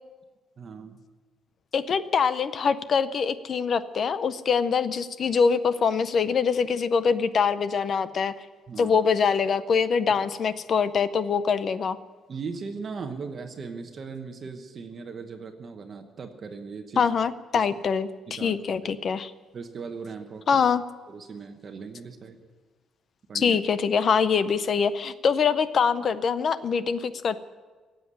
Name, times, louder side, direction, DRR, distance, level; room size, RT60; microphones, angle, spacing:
voice 1, 0.6-1.0 8.7-9.0 12.3-17.1 17.5-17.7 18.3-18.6 19.5-20.7 21.1-22.4 23.3-23.6, right 5 dB, 35° right, 6 dB, 1.0 m, -38 dB
voice 2, 1.7-8.3 8.8-12.0 17.0-19.3 20.5-20.8 23.3-27.4, left 6 dB, 40° left, 14 dB, 0.6 m, -24 dB
17.5 x 8.0 x 9.9 m, 1.4 s
cardioid pair, 175°, 0 cm